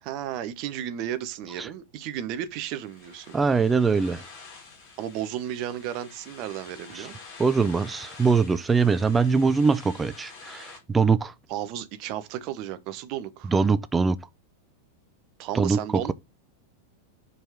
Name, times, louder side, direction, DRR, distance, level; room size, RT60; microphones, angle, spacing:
voice 1, 0.0-3.4 5.0-7.2 11.5-13.5 15.4-16.1, right 11 dB, 40° right, 0.8 m, -33 dB
sound 1, 2.7-10.8, left 4 dB, 40° left, 2.9 m, -47 dB
voice 2, 3.3-4.2 7.0-7.1 7.4-11.3 13.5-14.2 15.5-16.1, right 5 dB, 15° right, 0.5 m, -22 dB
5.0 x 4.5 x 5.7 m
figure-of-eight pair, 90°, 0 cm